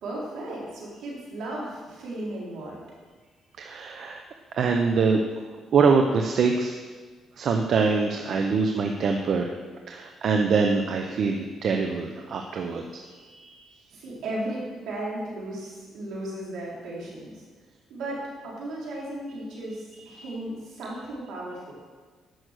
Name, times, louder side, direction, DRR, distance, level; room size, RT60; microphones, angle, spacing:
voice 1, 0.0-2.8 13.9-17.4 17.9-21.7, right 1 dB, 80° right, -5 dB, 3.9 m, -35 dB
voice 2, 3.6-4.2 4.6-5.2 5.7-6.7 7.4-9.5 9.9-13.6 20.1-20.2, right 5 dB, 60° right, 4 dB, 0.9 m, -24 dB
11.0 x 6.3 x 6.5 m, 1.4 s
cardioid pair, 90°, 0 cm